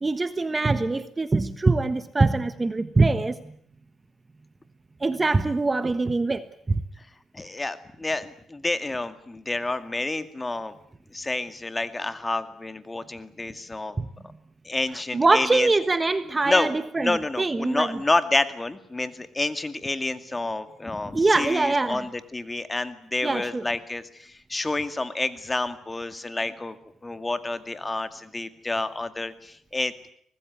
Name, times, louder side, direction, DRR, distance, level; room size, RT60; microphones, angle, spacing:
voice 1, 0.0-3.4 5.0-6.7 14.0-14.1 15.1-18.0 21.1-22.0 23.2-23.6, right 3 dB, 20° right, 1.3 m, -23 dB
voice 2, 7.3-10.7 11.1-14.0 14.6-15.7 16.4-26.8 27.0-30.1, left 2 dB, 20° left, 2.2 m, -29 dB
25.0 x 19.5 x 9.5 m
cardioid pair, 90°, 0 cm